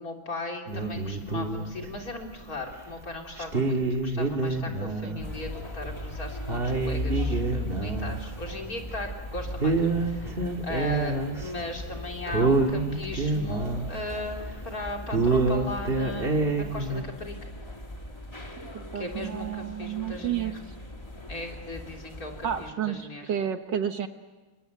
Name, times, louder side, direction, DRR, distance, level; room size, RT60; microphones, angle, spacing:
voice 1, 0.0-17.5 19.0-20.6 21.3-23.3, left 2 dB, 45° left, 1 dB, 3.7 m, -38 dB
sound 1, 0.7-2.2 2.7-2.8 3.4-5.3 5.5-5.6 6.1-6.2 6.4-9.3 9.6-11.7 11.9-12.0 12.3-14.7 15.0-17.0, right 3 dB, 30° right, 2.2 m, -27 dB
sound 2, 5.2-22.7, left 2 dB, 15° left, 1.9 m, -38 dB
voice 2, 18.6-20.5 22.4-24.1, right 9 dB, 65° right, 8 dB, 1.7 m, -31 dB
27.5 x 23.0 x 9.1 m, 1.2 s
omnidirectional pair, 2.2 m